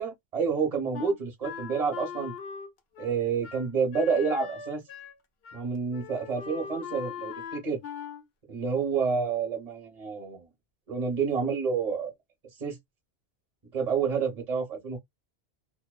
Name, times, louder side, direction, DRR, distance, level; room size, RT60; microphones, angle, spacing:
voice 1, 0.0-2.3 3.0-4.8 5.5-7.8 8.5-10.5 10.9-12.1 12.6-12.8 13.7-15.0, right 5 dB, 35° right, 1.0 m, -29 dB
Wind instrument woodwind instrument, 0.9-5.2 5.4-5.6 5.9-8.2, left 7 dB, 70° left, 0.8 m, -40 dB
2.8 x 2.1 x 2.2 m
omnidirectional pair, 1.1 m